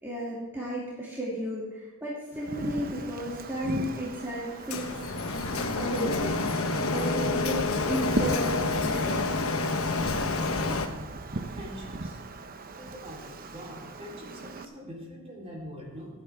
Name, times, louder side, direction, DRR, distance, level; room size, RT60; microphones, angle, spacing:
voice 1, 0.0-5.0 5.7-7.6 7.9-9.2, equal, 10° right, -8 dB, 2.6 m, -34 dB
Wind, 2.3-14.7, right 2 dB, 45° right, 0.8 m, -38 dB
Printer, 4.7-10.9, left 3 dB, 70° left, 1.1 m, -28 dB
voice 2, 11.3-12.2 12.8-16.1, equal, 30° right, -2 dB, 3.7 m, -43 dB
26.0 x 9.0 x 3.6 m, 1.2 s
head